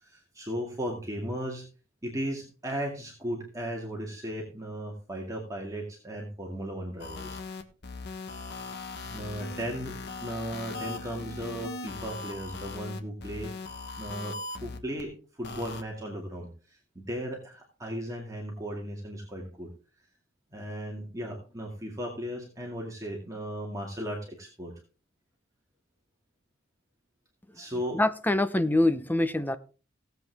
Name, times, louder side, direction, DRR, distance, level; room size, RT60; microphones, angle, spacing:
voice 1, 0.0-1.6 2.0-7.4 9.0-13.5 14.0-15.1 15.4-16.5 17.0-19.7 20.5-24.7 27.5-28.0, equal, 15° right, 2.2 m, -36 dB
sound 1, 7.0-15.0 15.4-15.8, left 3 dB, 60° left, 1.3 m, -39 dB
voice 2, 27.9-29.6, left 1 dB, 10° left, 0.7 m, -24 dB
17.0 x 8.0 x 3.5 m
head